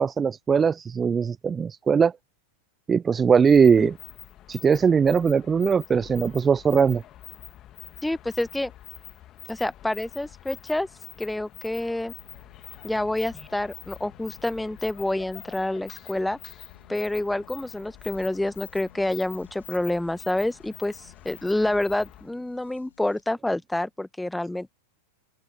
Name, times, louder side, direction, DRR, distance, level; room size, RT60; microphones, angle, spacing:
voice 1, 0.0-2.1 2.9-4.0 4.5-7.0, right 6 dB, 20° right, 0.5 m, -20 dB
sound 1, 3.4-22.3, left 13 dB, 30° left, 1.9 m, -46 dB
voice 2, 8.0-8.7 9.5-10.9 11.2-12.1 12.8-16.4 16.9-24.7, left 1 dB, 5° left, 1.2 m, -28 dB
sound 2, 12.1-23.2, left 8 dB, 70° left, 4.3 m, -56 dB
open air
figure-of-eight pair, 90°, 0 cm